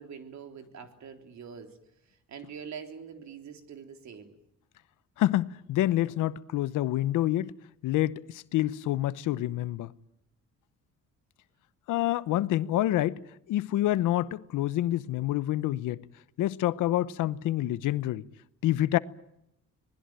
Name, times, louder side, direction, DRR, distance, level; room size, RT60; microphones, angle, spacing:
voice 1, 0.0-1.8 2.1-4.4, right 7 dB, 65° right, 3.7 m, -44 dB
voice 2, 5.2-7.5 7.8-9.9 11.9-13.2 13.5-16.0 16.4-18.2 18.6-19.0, left 14 dB, 85° left, 0.9 m, -27 dB
26.0 x 20.0 x 9.0 m
cardioid pair, 90°, 30 cm